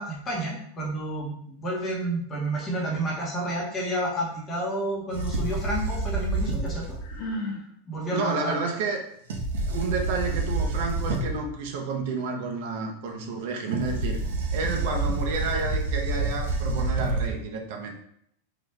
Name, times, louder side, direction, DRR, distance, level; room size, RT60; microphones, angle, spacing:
voice 1, 0.0-6.8 7.9-8.6, right 1 dB, 20° left, -3 dB, 1.1 m, -30 dB
sound 1, 5.1-7.2 9.3-11.5 13.7-17.3, right 2 dB, 85° right, 1.0 m, -28 dB
Sigh, 7.0-7.7, left 1 dB, 55° left, 1.0 m, -32 dB
voice 2, 8.1-9.0 9.7-14.2 14.5-17.9, right 4 dB, 55° right, 2 dB, 0.8 m, -30 dB
3.9 x 3.2 x 3.3 m, 0.70 s
supercardioid pair, 165°, 0 cm